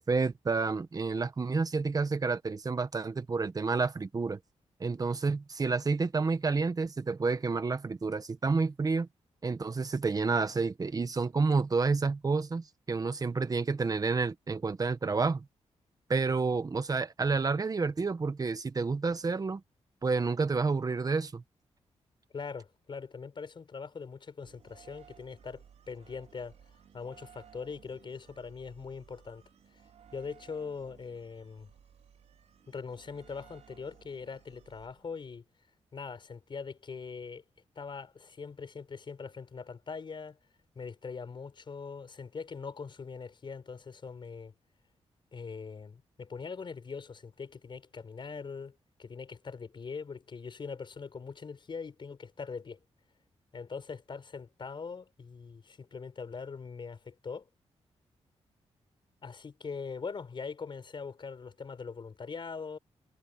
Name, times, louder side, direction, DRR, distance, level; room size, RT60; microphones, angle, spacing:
voice 1, 0.0-4.4 4.8-9.1 9.4-15.4 16.1-19.6 20.0-21.4, right 4 dB, 35° right, 1.4 m, -29 dB
voice 2, 22.3-26.6 26.9-29.4 30.1-31.7 32.7-35.4 35.9-37.4 37.8-40.4 40.8-44.5 45.3-52.8 53.5-57.5 59.2-62.8, left 5 dB, 45° left, 5.5 m, -42 dB
sound 1, 24.4-35.4, right 8 dB, 80° right, 5.2 m, -58 dB
wide cardioid pair, 115°, 11 cm